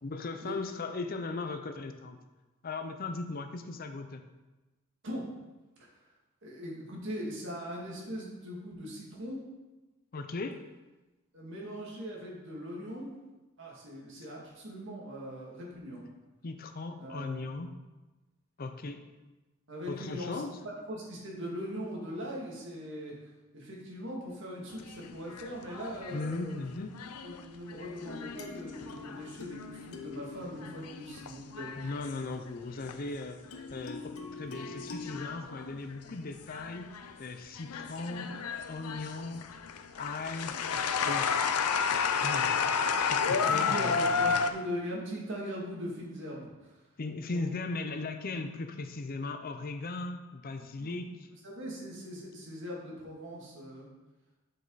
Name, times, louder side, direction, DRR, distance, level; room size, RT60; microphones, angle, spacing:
voice 1, 0.0-2.2 2.6-4.2 10.1-10.6 16.4-17.7 18.6-19.0 19.9-20.6 26.1-27.0 31.8-38.4 38.7-39.5 40.0-41.3 42.2-42.6 43.1-44.1 47.0-51.1, left 3 dB, 40° left, 8 dB, 0.5 m, -38 dB
voice 2, 6.4-9.4 11.3-13.1 13.6-16.0 17.0-17.5 19.7-26.6 27.2-31.7 43.3-46.8 47.3-47.4 50.8-51.0 51.4-53.9, equal, 55° right, -3 dB, 2.3 m, -40 dB
sound 1, 24.7-30.0 30.4-33.2 33.5-34.0 34.6-37.2 37.6-44.5, left 6 dB, 90° left, 0.6 m, -32 dB
sound 2, 28.0-32.3 33.5-35.3, left 4 dB, 70° left, 0.9 m, -45 dB
7.8 x 7.5 x 4.0 m, 1.1 s
head